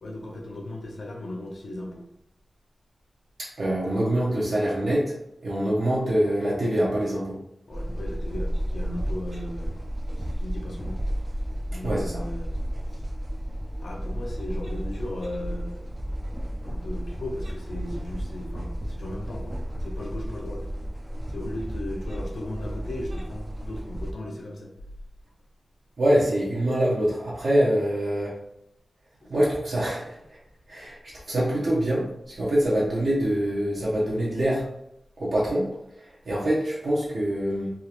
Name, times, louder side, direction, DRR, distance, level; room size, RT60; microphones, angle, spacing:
voice 1, 0.0-2.1 7.7-9.8 10.2-11.0 11.7-12.5 12.9-13.0 13.8-16.1 16.6-20.7 21.3-24.7 29.2-29.3, left 1 dB, 70° left, 0 dB, 0.8 m, -37 dB
voice 2, 3.4-5.1 5.4-7.4 11.8-12.2 26.0-28.4 29.3-30.4 30.7-31.0 31.3-34.6 35.2-35.7 36.3-37.7, right 1 dB, 75° right, -7 dB, 0.9 m, -24 dB
sound 1, 7.7-24.1, equal, 25° right, 0.4 m, -33 dB
3.6 x 2.4 x 3.0 m, 0.77 s
wide cardioid pair, 110°, 0 cm